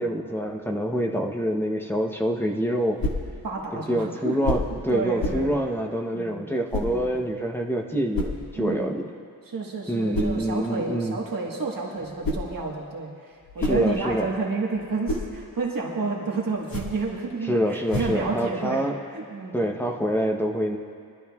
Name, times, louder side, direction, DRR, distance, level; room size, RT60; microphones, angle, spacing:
voice 1, 0.0-3.0 3.9-9.1 9.9-11.2 13.6-14.3 17.5-19.0 19.5-20.8, equal, 5° left, 2 dB, 0.7 m, -26 dB
sound 1, 3.0-3.3 4.4-4.8 5.2-5.5 6.7-7.0 8.1-8.4 10.1-10.4 12.0-12.6 13.3-14.3 14.8-15.3 16.6-17.1 17.9-18.3, left 1 dB, 70° left, 1.8 m, -29 dB
voice 2, 3.4-4.4 4.7-5.5 6.1-6.4 6.8-7.1 8.6-9.0 9.4-19.6, right 4 dB, 65° right, -2 dB, 1.4 m, -30 dB
23.0 x 12.0 x 2.4 m, 2.2 s
wide cardioid pair, 170°, 37 cm